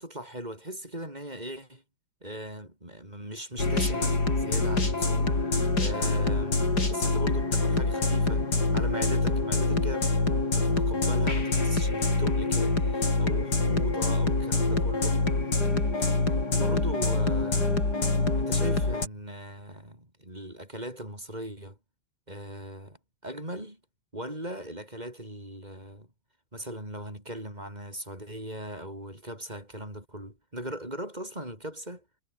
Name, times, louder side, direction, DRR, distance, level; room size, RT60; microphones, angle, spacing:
voice 1, 0.0-1.8 2.2-10.1 10.5-15.2 16.5-17.9 18.4-21.8 22.3-23.0 23.2-23.8 24.1-26.1 26.5-32.0, right 1 dB, 25° right, 6.8 m, -39 dB
sound 1, 3.6-19.1, left 3 dB, 75° left, 5.3 m, -25 dB
omnidirectional pair, 1.8 m